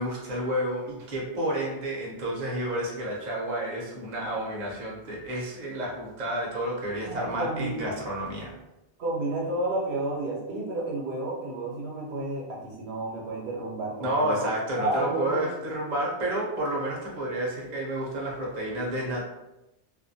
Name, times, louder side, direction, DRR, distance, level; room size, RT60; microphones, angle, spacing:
voice 1, 0.0-8.5 14.0-19.2, right 1 dB, 50° right, -3 dB, 0.7 m, -30 dB
voice 2, 7.1-8.0 9.0-14.5 14.8-15.4, right 2 dB, 75° right, -3 dB, 0.9 m, -31 dB
2.4 x 2.1 x 2.6 m, 0.93 s
omnidirectional pair, 1.1 m